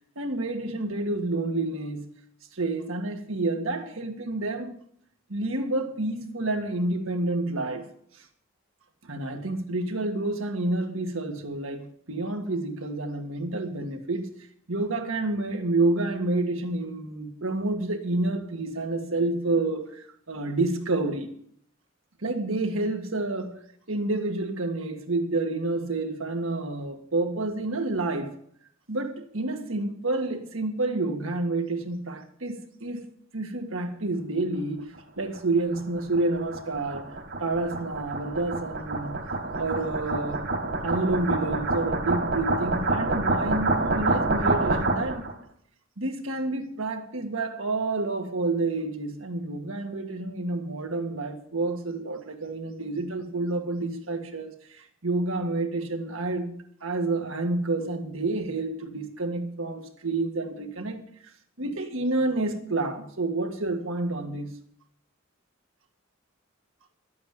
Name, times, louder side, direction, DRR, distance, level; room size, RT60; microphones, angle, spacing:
voice 1, 0.2-2.0 2.5-4.7 5.3-7.9 9.0-14.3 14.7-21.3 22.2-23.6 23.9-28.3 28.9-33.1 33.3-34.9 35.2-37.1 37.4-39.2 39.6-40.5 40.8-45.2 46.0-56.5 56.8-61.1 61.6-64.5, right 2 dB, 90° right, 1.9 m, -29 dB
sound 1, 35.3-45.3, right 2 dB, 55° right, 2.1 m, -27 dB
12.0 x 8.5 x 8.0 m
head